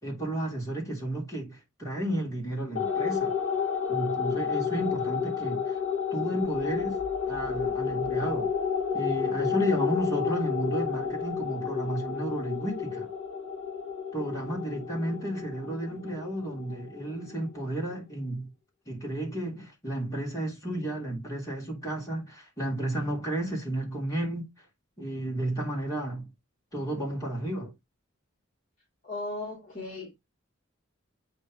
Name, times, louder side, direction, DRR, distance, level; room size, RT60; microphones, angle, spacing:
voice 1, 0.0-3.4 3.9-5.7 6.1-7.0 7.3-8.5 8.9-13.1 14.1-18.5 18.9-24.5 25.0-26.3 26.7-27.7, right 1 dB, 15° left, 3.3 m, -32 dB
sound 1, 2.8-17.5, left 7 dB, 70° left, 1.6 m, -31 dB
voice 2, 29.0-30.2, left 2 dB, 35° left, 2.7 m, -37 dB
8.4 x 3.5 x 3.7 m
head